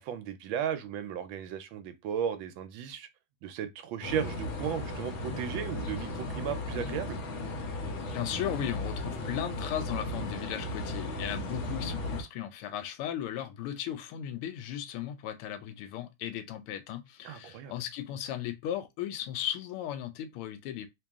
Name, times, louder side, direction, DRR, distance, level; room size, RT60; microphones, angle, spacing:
voice 1, 0.0-3.1 3.4-7.2 17.2-17.7, right 8 dB, 75° right, 1.2 m, -35 dB
sound 1, 4.0-12.2, left 2 dB, 70° left, 1.9 m, -36 dB
voice 2, 8.1-20.9, left 11 dB, 90° left, 1.6 m, -36 dB
3.3 x 2.9 x 3.5 m
omnidirectional pair, 2.3 m